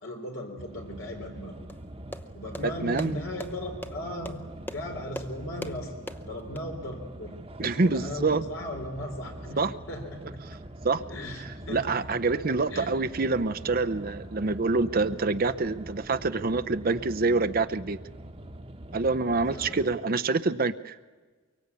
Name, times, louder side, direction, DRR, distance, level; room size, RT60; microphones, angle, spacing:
voice 1, 0.0-1.6 2.3-4.4 4.6-10.4 11.1-12.0 12.7-12.9 19.4-19.8, left 1 dB, 75° left, 2 dB, 3.9 m, -37 dB
sound 1, 0.6-20.0, right 1 dB, 30° right, 1.2 m, -43 dB
sound 2, 1.7-6.6, equal, 10° left, 0.8 m, -42 dB
voice 2, 2.6-3.2 7.6-8.4 9.6-9.7 10.8-11.0 11.7-18.0 18.9-20.9, right 3 dB, 45° right, 12 dB, 0.7 m, -26 dB
24.0 x 23.5 x 8.4 m, 1.4 s
head